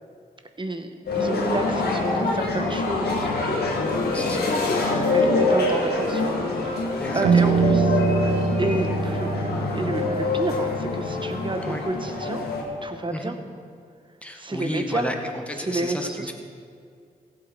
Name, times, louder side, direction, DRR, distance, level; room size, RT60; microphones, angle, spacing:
voice 1, 0.6-3.8 4.8-6.3 6.6-6.8 7.1-8.0 8.5-12.4 12.8-13.4 14.3-15.1 15.6-16.3, right 2 dB, 30° right, 7 dB, 1.2 m, -30 dB
sound 1, 1.1-12.6, left 3 dB, 85° left, 1.7 m, -25 dB
voice 2, 4.1-4.5 7.0-7.6 11.6-11.8 13.1-13.3 14.2-16.3, left 1 dB, 10° left, 2 dB, 1.7 m, -32 dB
Piano, 7.2-12.5, right 4 dB, 90° right, 1.4 m, -24 dB
15.5 x 7.7 x 4.7 m, 2.2 s
cardioid pair, 50°, 16 cm